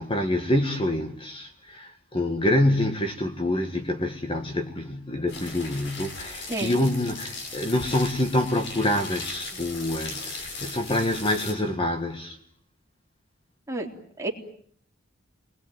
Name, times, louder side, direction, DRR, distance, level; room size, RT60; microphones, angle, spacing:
voice 1, 0.0-12.4, left 1 dB, 25° left, 1.7 m, -26 dB
sound 1, 5.3-11.5, left 3 dB, 55° left, 7.2 m, -38 dB
voice 2, 6.5-6.8 13.7-13.9 14.2-14.3, right 2 dB, 15° right, 3.6 m, -29 dB
29.5 x 21.0 x 9.3 m
head